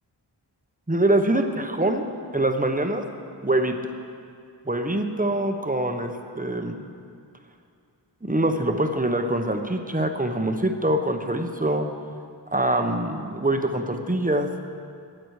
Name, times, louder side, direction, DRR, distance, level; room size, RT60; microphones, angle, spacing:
voice 1, 0.9-2.0 2.3-3.0 3.4-3.8 4.6-6.9 8.2-11.9 12.5-14.5, right 1 dB, 20° right, 5 dB, 1.1 m, -24 dB
20.0 x 8.8 x 4.9 m, 2.4 s
wide cardioid pair, 50°, 43 cm